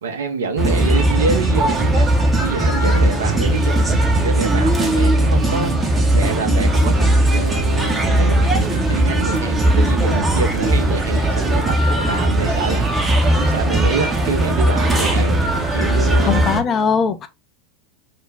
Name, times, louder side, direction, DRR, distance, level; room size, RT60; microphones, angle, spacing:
voice 1, 0.0-2.1 2.4-7.0 7.3-16.5, right 4 dB, 75° right, 0.6 m, -26 dB
sound 1, 0.6-16.6, right 1 dB, 15° right, 0.6 m, -18 dB
voice 2, 16.2-17.3, left 6 dB, 30° left, 0.4 m, -19 dB
2.5 x 2.0 x 3.2 m
figure-of-eight pair, 90°, 0 cm